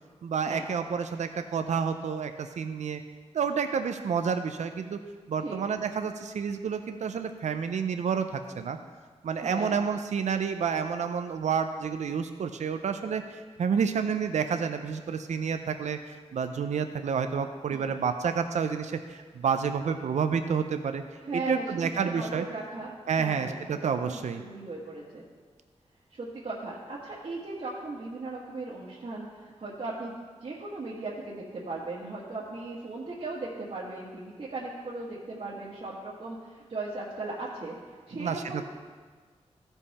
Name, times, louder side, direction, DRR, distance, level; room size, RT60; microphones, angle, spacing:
voice 1, 0.2-3.0 3.3-5.0 5.3-8.8 9.2-16.0 16.3-21.0 21.3-22.4 23.1-24.4 38.2-38.7, right 6 dB, 85° right, 8 dB, 0.5 m, -29 dB
voice 2, 9.4-9.8 17.7-17.9 21.2-22.9 23.2-25.2 26.1-30.1 30.4-37.8 38.1-38.7, right 2 dB, 60° right, -6 dB, 1.5 m, -37 dB
14.5 x 5.4 x 4.2 m, 1.5 s
wide cardioid pair, 95°, 12 cm